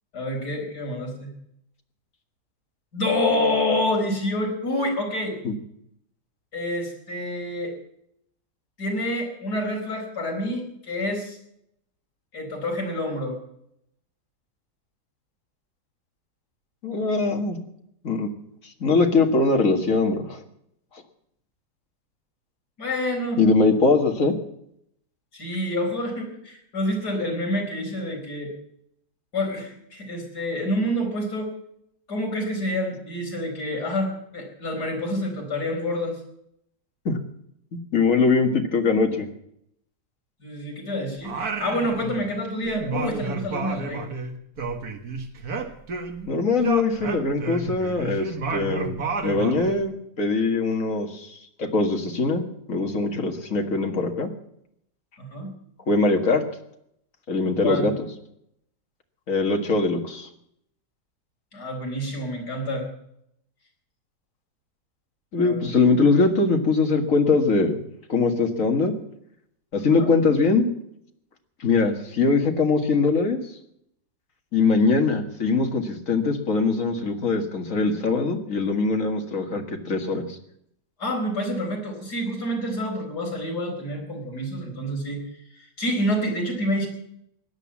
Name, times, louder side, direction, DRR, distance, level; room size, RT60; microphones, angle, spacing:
voice 1, 0.1-1.3 2.9-5.4 6.5-7.7 8.8-11.4 12.3-13.4 22.8-23.4 25.3-28.5 29.3-31.5 32.1-36.2 40.4-44.0 55.2-55.5 57.6-57.9 61.5-62.9 65.4-65.6 81.0-85.2 85.5-86.9, left 1 dB, 65° left, 1 dB, 4.9 m, -27 dB
voice 2, 16.8-17.6 18.0-18.3 18.8-20.4 23.4-24.3 37.1-37.2 37.7-39.3 46.3-49.0 49.2-54.3 55.9-56.4 57.3-57.9 59.3-60.3 65.3-67.8 68.1-68.9 69.7-70.6 71.6-73.4 74.5-80.2, left 3 dB, 50° left, 4 dB, 2.2 m, -22 dB
Singing, 41.2-42.4 42.6-46.3 46.6-49.8, right 4 dB, 60° right, 2.1 m, -31 dB
17.0 x 11.0 x 7.3 m, 0.74 s
omnidirectional pair, 1.8 m